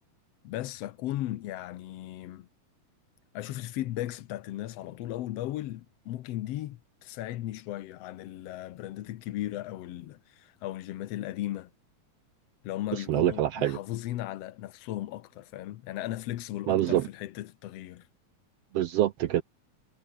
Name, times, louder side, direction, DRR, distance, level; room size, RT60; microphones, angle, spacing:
voice 1, 0.4-2.5 3.3-11.7 12.6-18.1, left 14 dB, 75° left, 1.5 m, -36 dB
voice 2, 12.9-13.8 16.7-17.0 18.7-19.4, right 12 dB, 80° right, 1.4 m, -25 dB
omnidirectional pair, 3.9 m